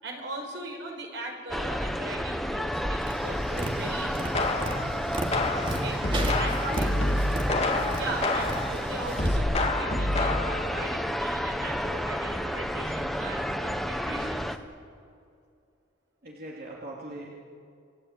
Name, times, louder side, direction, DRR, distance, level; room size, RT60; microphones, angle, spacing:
voice 1, 0.0-4.6 5.7-6.0 6.4-7.0 7.9-14.5, right 2 dB, 70° right, 2 dB, 5.5 m, -39 dB
sound 1, 1.5-14.6, equal, ahead, 0.9 m, -31 dB
Tap, 3.0-9.4, right 1 dB, 25° right, 2.4 m, -35 dB
sound 2, 4.3-4.9 5.3-8.7 9.2-10.7, left 2 dB, 35° left, 2.2 m, -27 dB
voice 2, 6.7-7.1 16.2-17.3, right 1 dB, 50° right, -4 dB, 3.0 m, -41 dB
28.0 x 17.5 x 8.7 m, 2.4 s
head